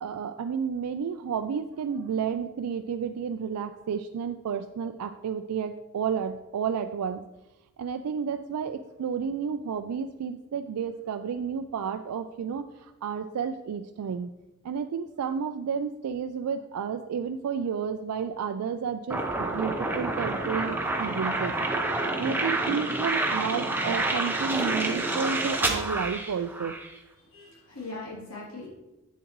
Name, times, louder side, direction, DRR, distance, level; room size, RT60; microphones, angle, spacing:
voice 1, 0.0-7.2 7.8-14.3 14.6-21.6 22.2-26.8, right 6 dB, 90° right, 8 dB, 0.4 m, -31 dB
sound 1, 19.1-26.9, right 2 dB, 10° right, 0.7 m, -28 dB
voice 2, 27.2-28.7, left 2 dB, 70° left, -5 dB, 3.0 m, -40 dB
8.2 x 7.3 x 3.0 m, 1.0 s
head